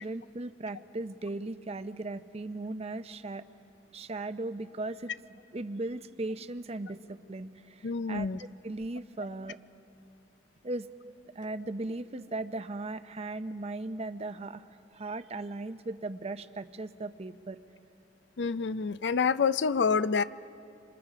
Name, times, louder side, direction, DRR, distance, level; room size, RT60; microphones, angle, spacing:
voice 1, 0.0-3.4 3.9-9.6 10.6-10.9 11.3-17.6, right 2 dB, 35° right, 11 dB, 0.7 m, -37 dB
voice 2, 7.8-8.4 18.4-20.2, left 5 dB, 75° left, 15 dB, 0.5 m, -27 dB
26.5 x 26.5 x 5.0 m, 2.8 s
head